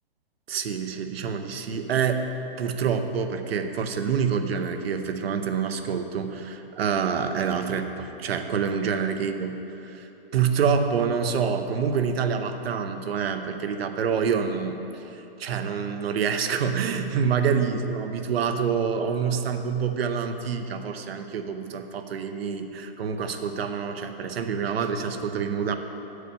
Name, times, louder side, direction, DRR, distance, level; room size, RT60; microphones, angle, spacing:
voice 1, 0.5-9.6 9.8-25.7, right 6 dB, 75° right, 7 dB, 0.8 m, -27 dB
7.8 x 4.8 x 6.8 m, 3.0 s
hypercardioid pair, 170°, 30 cm